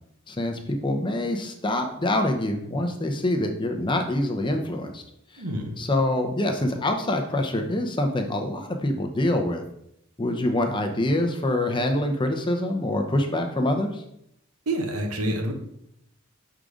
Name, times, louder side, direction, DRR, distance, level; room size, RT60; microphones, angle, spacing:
voice 1, 0.3-5.0 5.3-5.4 5.8-9.6 10.2-14.0, left 1 dB, 20° left, 4 dB, 0.6 m, -25 dB
voice 2, 5.4-5.8 14.7-15.5, right 1 dB, 85° right, 3 dB, 1.2 m, -27 dB
6.5 x 3.8 x 4.9 m, 0.77 s
head